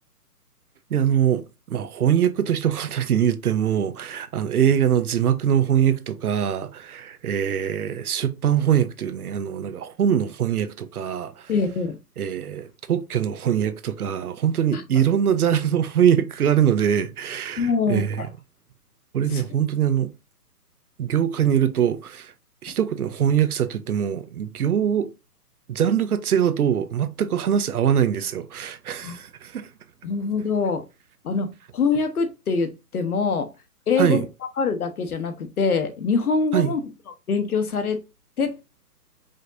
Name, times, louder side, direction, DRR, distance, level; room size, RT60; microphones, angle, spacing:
voice 1, 0.9-11.5 12.2-18.3 19.1-20.1 21.0-22.3 22.6-25.1 25.7-29.7 34.0-34.2 36.5-36.8, right 9 dB, 65° right, 0.6 m, -23 dB
voice 2, 11.5-12.0 14.7-14.8 17.6-18.3 19.3-19.4 29.0-29.2 30.0-30.8 31.2-33.5 33.9-34.2 34.6-36.8 37.3-38.0 38.4-38.6, left 4 dB, 65° left, 1.0 m, -24 dB
5.0 x 2.8 x 2.5 m
hypercardioid pair, 180°, 47 cm